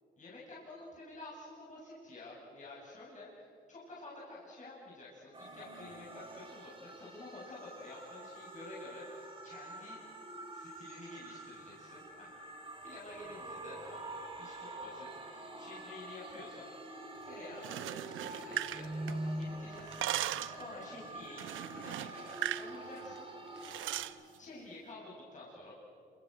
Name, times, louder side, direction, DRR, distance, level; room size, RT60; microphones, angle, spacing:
voice 1, 0.2-10.0 10.5-12.3 12.8-16.7 17.2-20.1 20.5-23.3 24.4-25.8, left 2 dB, 40° left, -5 dB, 8.0 m, -50 dB
sound 1, 5.3-24.0, right 1 dB, 25° right, 4.4 m, -46 dB
sound 2, 17.5-19.4 19.7-20.6 21.4-22.7 23.0-23.2 23.6-24.2, right 14 dB, 80° right, 0.8 m, -38 dB
28.0 x 27.5 x 6.8 m, 2.4 s
cardioid pair, 90°, 20 cm